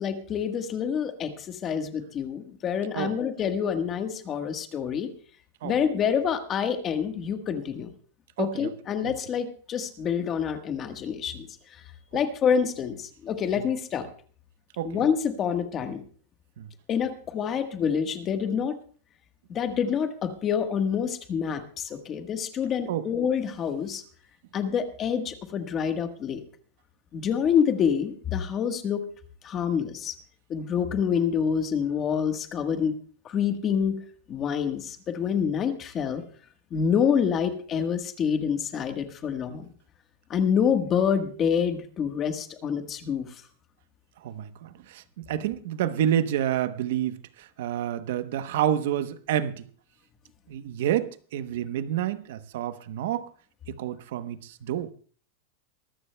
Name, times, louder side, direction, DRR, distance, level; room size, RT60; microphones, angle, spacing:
voice 1, 0.0-5.1 5.6-7.9 8.4-11.5 12.1-14.1 14.8-16.0 16.9-18.8 19.5-24.0 24.5-26.4 27.1-29.0 29.4-30.1 30.5-32.9 33.2-34.0 34.3-36.2 36.7-39.7 40.3-43.3, left 7 dB, 25° left, 1.3 m, -27 dB
voice 2, 8.4-8.7 9.0-9.1 13.6-13.7 14.8-15.0 16.6-16.7 22.9-23.1 44.2-49.7 50.5-53.3 53.7-54.9, right 11 dB, 60° right, 0.9 m, -29 dB
23.0 x 14.0 x 2.2 m
supercardioid pair, 165°, 0 cm